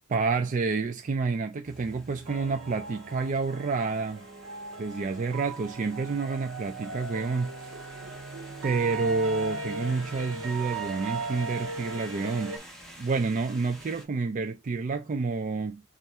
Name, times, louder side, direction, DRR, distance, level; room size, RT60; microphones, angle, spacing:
voice 1, 0.1-4.3 4.8-7.8 8.6-12.6 13.0-15.8, right 4 dB, 35° right, 0.4 m, -29 dB
sound 1, 1.6-14.0, right 1 dB, ahead, 1.2 m, -47 dB
sound 2, 2.3-12.6, right 3 dB, 80° right, 0.9 m, -38 dB
4.5 x 2.5 x 4.1 m
head